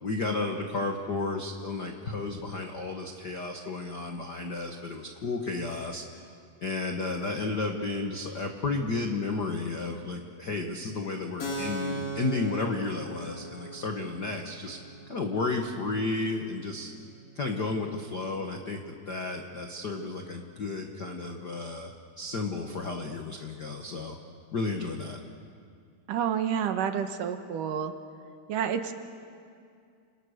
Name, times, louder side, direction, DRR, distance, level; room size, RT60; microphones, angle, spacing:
voice 1, 0.0-6.0 6.6-14.8 15.1-16.9 17.3-24.2 24.5-25.2, left 3 dB, 60° left, 3 dB, 1.1 m, -32 dB
Keyboard (musical), 11.4-18.7, right 1 dB, 90° left, 6.4 m, -40 dB
voice 2, 26.1-27.9 28.5-28.9, right 8 dB, 70° right, 7 dB, 2.6 m, -29 dB
29.5 x 27.0 x 6.6 m, 2.3 s
omnidirectional pair, 4.1 m